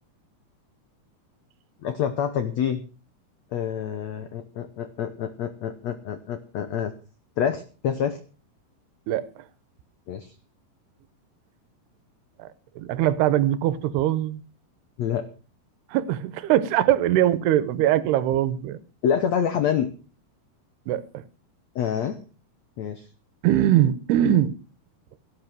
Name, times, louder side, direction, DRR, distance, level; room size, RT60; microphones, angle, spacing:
voice 1, 1.8-2.8 3.5-6.9 7.4-8.2 10.1-10.3 15.0-15.3 19.0-19.9 21.7-22.2 22.8-23.0, left 8 dB, 85° left, 1.5 m, -27 dB
voice 2, 12.8-14.4 15.9-18.8 20.9-21.0 23.4-24.5, right 12 dB, 85° right, 2.9 m, -21 dB
17.5 x 8.6 x 6.2 m
omnidirectional pair, 4.7 m